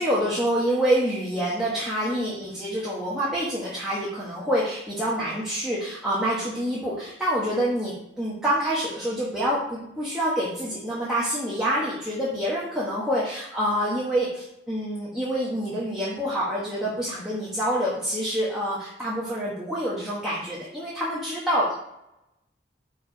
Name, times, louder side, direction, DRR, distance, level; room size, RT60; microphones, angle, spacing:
voice 1, 0.0-21.7, equal, 5° right, -8 dB, 1.1 m, -27 dB
4.7 x 4.3 x 4.8 m, 0.84 s
head